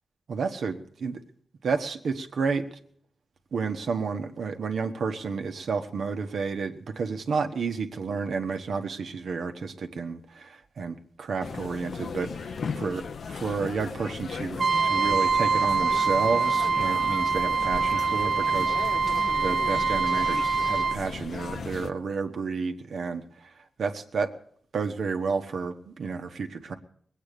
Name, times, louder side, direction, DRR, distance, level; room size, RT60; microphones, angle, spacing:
voice 1, 0.3-1.2 1.6-2.6 3.5-13.0 13.3-18.8 19.4-23.5 23.8-24.3 24.7-26.8, right 5 dB, 75° right, 6 dB, 1.4 m, -31 dB
sound 1, 11.4-21.9, left 5 dB, 70° left, 0.7 m, -36 dB
Trumpet, 14.6-21.0, right 4 dB, 60° right, 0.6 m, -24 dB
21.0 x 8.8 x 6.8 m, 0.63 s
cardioid pair, 70°, 0 cm